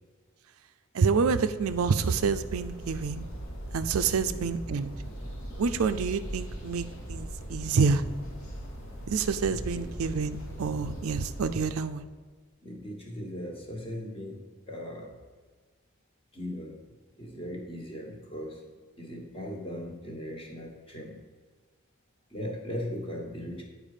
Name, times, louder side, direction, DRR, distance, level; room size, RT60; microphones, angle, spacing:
voice 1, 0.9-3.2 3.7-4.9 5.6-8.0 9.1-12.0, right 5 dB, 75° right, 11 dB, 0.4 m, -27 dB
sound 1, 1.6-11.7, equal, 70° left, 1.8 m, -40 dB
voice 2, 4.0-4.4 9.5-9.9 12.6-14.4 14.7-15.1 16.3-16.8 17.1-18.6 19.0-21.2 22.3-23.6, equal, 25° left, 0 dB, 1.4 m, -38 dB
8.9 x 4.9 x 4.9 m, 1.5 s
head